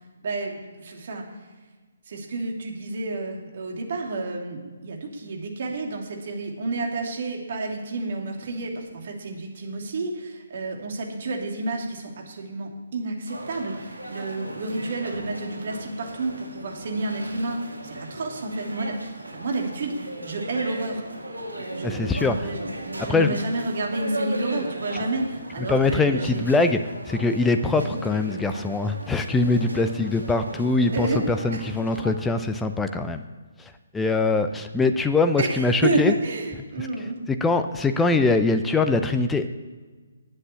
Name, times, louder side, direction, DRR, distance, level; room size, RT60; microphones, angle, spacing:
voice 1, 0.2-1.3 2.1-19.0 19.3-21.0 21.5-22.6 23.0-26.5 27.6-28.0 30.9-31.2 31.5-31.6 35.4-37.2, right 2 dB, 50° right, 1 dB, 2.5 m, -30 dB
sound 1, 13.3-32.1, right 1 dB, 85° right, 2.4 m, -36 dB
voice 2, 21.8-22.4 23.1-23.4 25.7-33.2 33.6-36.1 36.8-36.9 37.3-39.5, left 3 dB, 5° left, 8 dB, 0.6 m, -23 dB
9.9 x 8.1 x 8.3 m, 1.4 s
figure-of-eight pair, 135°, 0 cm